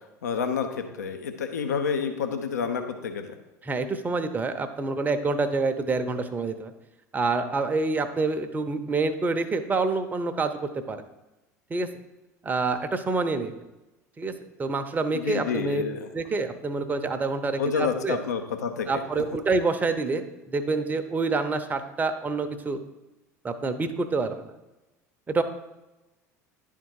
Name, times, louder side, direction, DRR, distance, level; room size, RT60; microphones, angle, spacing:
voice 1, 0.2-3.3 15.1-16.1 17.6-19.0, left 6 dB, 75° left, 7 dB, 0.7 m, -29 dB
voice 2, 3.6-6.7 7.1-11.0 11.7-11.9 12.4-13.6 14.2-14.3 14.6-15.8 16.1-18.2 18.9-22.8 23.4-24.5 25.3-25.4, right 3 dB, 20° right, 7 dB, 0.7 m, -27 dB
10.5 x 3.7 x 4.6 m, 1.0 s
figure-of-eight pair, 70°, 9 cm